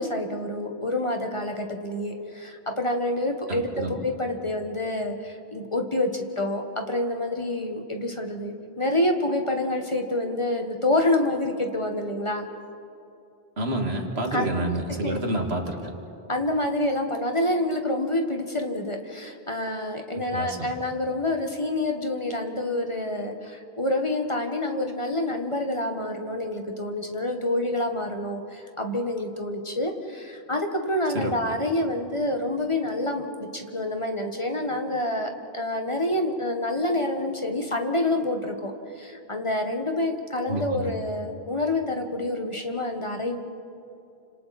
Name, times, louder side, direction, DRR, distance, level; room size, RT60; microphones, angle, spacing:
voice 1, 0.0-12.5 14.3-14.5 15.0-15.2 16.3-43.4, left 1 dB, 30° left, 3 dB, 1.7 m, -27 dB
voice 2, 3.5-4.0 13.6-15.9 20.1-20.7 31.1-31.3 40.5-40.9, right 1 dB, 75° right, 2 dB, 2.5 m, -29 dB
30.0 x 26.5 x 4.4 m, 2.6 s
omnidirectional pair, 1.1 m